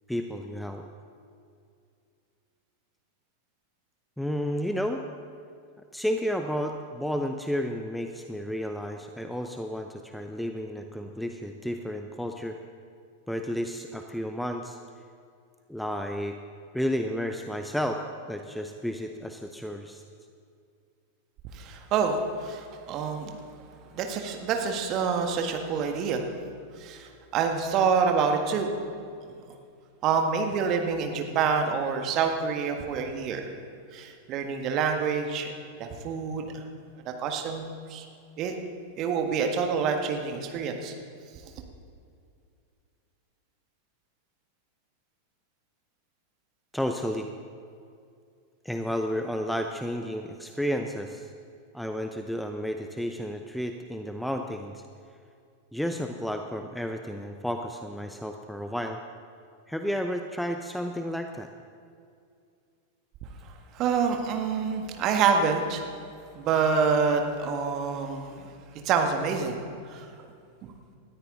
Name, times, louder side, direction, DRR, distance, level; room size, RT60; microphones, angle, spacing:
voice 1, 0.1-0.8 4.2-5.0 5.9-12.6 13.3-14.8 15.7-16.4 16.7-20.0 46.7-47.3 48.6-51.3 51.7-54.8 55.7-59.0 59.7-61.5, equal, ahead, 5 dB, 0.7 m, -32 dB
voice 2, 21.5-23.3 23.9-26.2 26.8-28.7 29.3-29.4 30.0-33.4 33.9-35.5 35.8-36.6 37.1-38.1 38.4-38.6 39.0-40.9 63.7-65.8 66.3-68.5 68.8-69.6 69.9-70.1 70.6-70.7, right 5 dB, 35° right, 4 dB, 1.7 m, -27 dB
19.5 x 13.5 x 3.9 m, 2.4 s
figure-of-eight pair, 90°, 0 cm